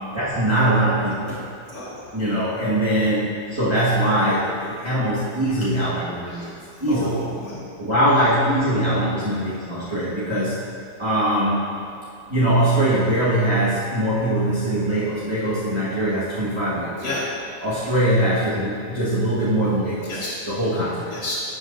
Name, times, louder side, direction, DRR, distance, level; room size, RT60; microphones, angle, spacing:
voice 1, 0.1-1.4 2.1-6.5 6.8-7.2 7.8-10.6 11.0-11.6 12.3-17.1 17.6-21.1, right 1 dB, 20° right, -12 dB, 1.6 m, -22 dB
voice 2, 1.7-2.0 6.3-6.5 6.9-7.9 17.0-17.3 20.1-20.4 21.1-21.3, left 1 dB, 65° left, -9 dB, 1.9 m, -31 dB
12.5 x 8.2 x 2.6 m, 2.6 s
omnidirectional pair, 1.6 m